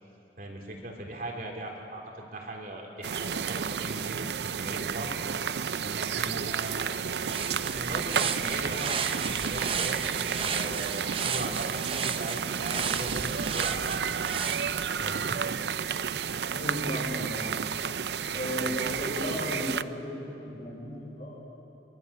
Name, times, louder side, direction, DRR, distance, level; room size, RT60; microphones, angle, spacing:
voice 1, 0.4-5.2 5.8-7.0 7.6-14.4 15.0-15.5 18.3-18.5, right 1 dB, 50° right, 0 dB, 3.6 m, -39 dB
sound 1, 3.0-19.8, right 7 dB, 70° right, 0.5 m, -31 dB
sound 2, 6.6-15.3, right 6 dB, 30° right, 0.7 m, -35 dB
voice 2, 16.5-17.5 18.3-21.4, left 1 dB, 40° left, -9 dB, 5.9 m, -35 dB
24.0 x 23.0 x 7.0 m, 2.8 s
head